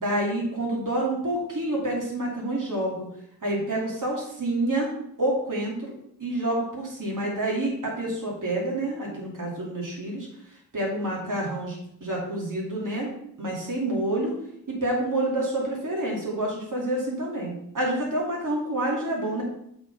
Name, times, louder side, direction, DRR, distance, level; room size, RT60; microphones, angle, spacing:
voice 1, 0.0-2.9 3.4-4.9 5.2-5.9 6.2-10.3 10.7-14.3 14.7-19.4, right 1 dB, 60° right, -3 dB, 2.6 m, -28 dB
7.7 x 4.4 x 4.0 m, 0.74 s
cardioid pair, 50°, 36 cm